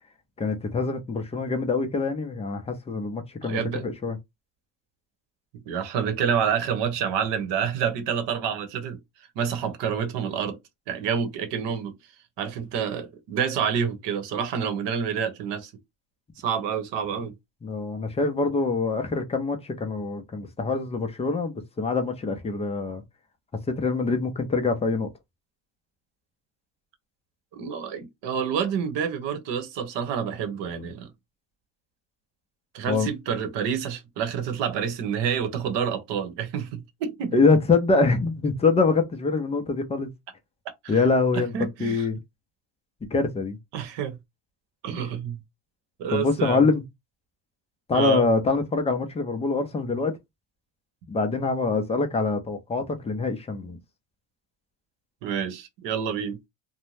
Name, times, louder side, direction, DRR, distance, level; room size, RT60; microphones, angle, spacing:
voice 1, 0.4-4.2 17.6-23.0 23.7-25.1 32.9-33.1 37.3-40.1 40.9-41.5 41.8-42.2 43.1-43.6 46.1-46.8 47.9-50.1 51.1-53.8, left 4 dB, 15° left, 0.4 m, -24 dB
voice 2, 3.4-3.9 5.7-9.0 9.4-10.6 10.9-11.9 12.4-15.7 16.4-17.3 27.5-31.1 32.7-37.3 40.8-41.1 41.3-42.1 43.7-44.2 44.8-45.4 46.0-46.7 47.9-48.3 55.2-56.4, right 7 dB, 60° right, 0.9 m, -28 dB
2.6 x 2.1 x 3.1 m
cardioid pair, 120°, 49 cm